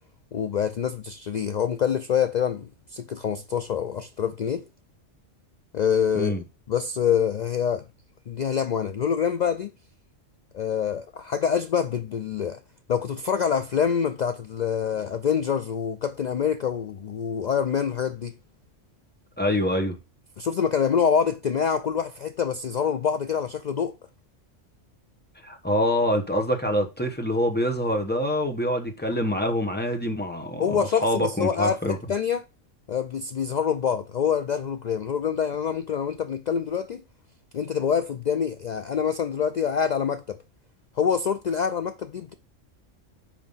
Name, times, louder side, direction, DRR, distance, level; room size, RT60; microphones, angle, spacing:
voice 1, 0.3-4.7 5.7-6.3 6.7-7.9 8.3-9.7 10.5-12.6 12.9-18.3 20.4-23.9 30.6-32.4 32.9-37.0 37.5-40.4 41.0-42.3, left 7 dB, 75° left, 0.4 m, -26 dB
voice 2, 19.4-20.0 25.4-32.0, equal, 10° left, 1.0 m, -25 dB
5.7 x 5.0 x 5.5 m
omnidirectional pair, 1.3 m